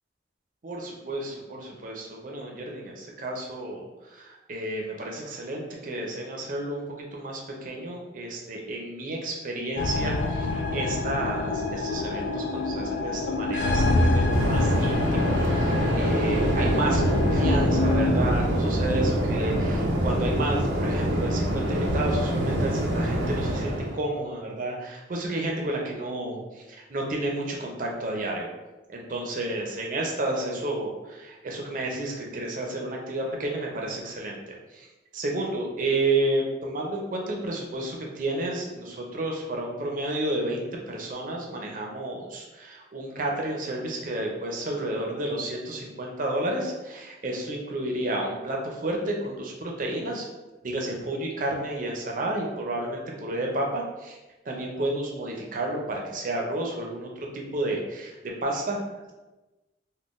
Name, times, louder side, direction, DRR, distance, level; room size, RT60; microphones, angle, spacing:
voice 1, 0.6-3.9 4.1-26.6 26.9-28.5 28.9-34.4 34.7-34.9 35.1-50.3 50.6-54.2 54.5-58.8, right 1 dB, 50° right, 0 dB, 0.5 m, -31 dB
sound 1, 9.8-18.1, left 2 dB, 85° left, 0.4 m, -26 dB
Waves surf, 14.3-24.0, right 1 dB, 90° right, 0.6 m, -25 dB
3.7 x 2.2 x 2.5 m, 1.1 s
head